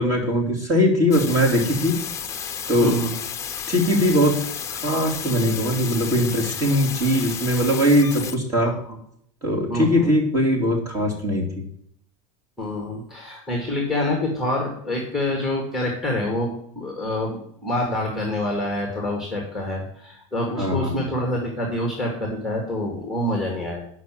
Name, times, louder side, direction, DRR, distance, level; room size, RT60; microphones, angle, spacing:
voice 1, 0.0-2.0 2.7-3.0 3.7-4.4 4.8-8.8 9.4-11.5 20.6-21.0, equal, 20° right, 0 dB, 2.8 m, -20 dB
sound 1, 1.1-8.4, left 8 dB, 20° left, 0.9 m, -32 dB
voice 2, 2.8-3.2 8.9-9.0 9.7-10.1 12.6-23.8, left 1 dB, ahead, 1 dB, 2.0 m, -26 dB
9.3 x 6.0 x 7.6 m, 0.67 s
supercardioid pair, 155°, 16 cm